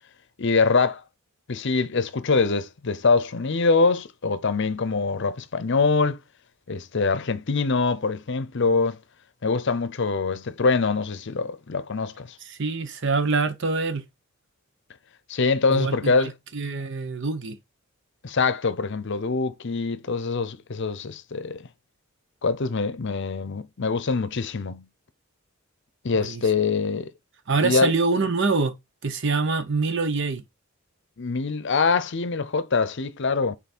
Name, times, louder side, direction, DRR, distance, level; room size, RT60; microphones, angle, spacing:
voice 1, 0.4-1.0 1.5-6.2 6.7-9.0 9.4-12.4 15.3-16.3 18.2-21.6 22.4-24.9 26.0-27.1 27.6-27.9 31.2-33.6, left 4 dB, 60° left, 0.7 m, -24 dB
voice 2, 12.4-14.0 15.7-17.6 26.1-26.4 27.5-28.7 29.0-30.4, right 4 dB, 60° right, 0.9 m, -25 dB
5.8 x 4.1 x 4.3 m
head